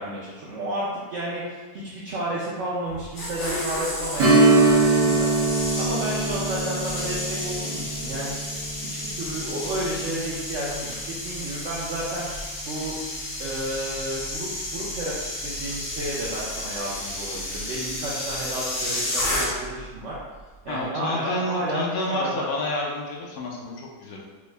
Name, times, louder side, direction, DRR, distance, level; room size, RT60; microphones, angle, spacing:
voice 1, 0.0-5.3 5.8-8.3 8.9-12.3 12.6-12.9 13.4-20.2 20.6-22.5, right 1 dB, 70° right, -7 dB, 0.6 m, -32 dB
sound 1, 2.9-19.8 20.1-20.4, left 1 dB, 50° left, 0.7 m, -32 dB
Strum, 4.2-13.4 13.7-13.8 16.3-16.5 17.0-17.1, right 3 dB, 90° right, 1.2 m, -24 dB
voice 2, 20.7-24.2, left 2 dB, 70° left, -3 dB, 1.0 m, -29 dB
3.5 x 2.0 x 3.2 m, 1.3 s
omnidirectional pair, 1.8 m